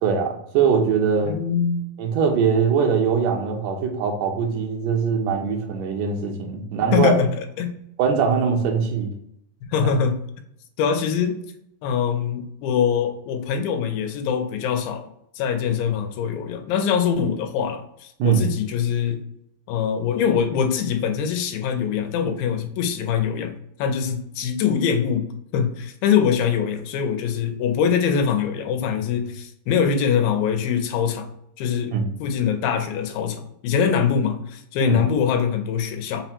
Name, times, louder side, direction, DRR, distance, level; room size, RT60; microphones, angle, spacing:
voice 1, 0.0-1.3 2.0-7.1 8.0-9.1 9.8-9.9 18.2-18.5 31.9-32.1 34.8-35.0, right 6 dB, 80° right, 1 dB, 1.5 m, -21 dB
voice 2, 1.3-1.8 6.9-7.7 9.7-10.2 10.8-11.4 11.8-15.1 15.4-19.2 19.7-31.3 31.6-36.2, left 7 dB, 85° left, 6 dB, 2.4 m, -23 dB
5.6 x 2.1 x 4.2 m, 0.76 s
omnidirectional pair, 4.1 m